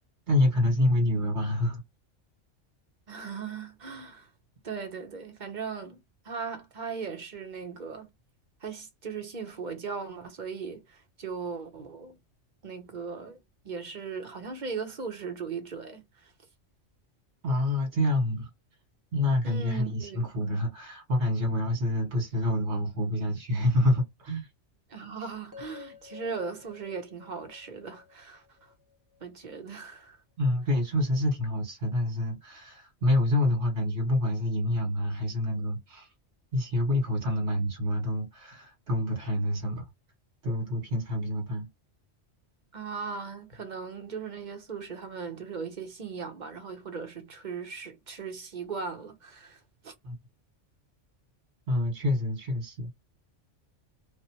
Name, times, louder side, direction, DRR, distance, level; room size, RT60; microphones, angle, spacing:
voice 1, 0.3-1.8 17.4-18.5 19.1-24.5 30.4-36.1 36.5-39.9 40.4-41.7 50.0-50.2 51.7-52.9, left 1 dB, 65° right, 1.8 m, -27 dB
voice 2, 3.1-4.3 4.6-6.0 6.2-8.1 8.6-12.2 12.6-13.4 13.6-16.3 19.4-20.3 24.9-28.7 29.2-30.2 42.7-49.9, right 5 dB, 40° right, 1.0 m, -38 dB
sound 1, 25.5-29.6, left 6 dB, 15° right, 0.9 m, -51 dB
4.7 x 2.1 x 2.9 m
omnidirectional pair, 1.2 m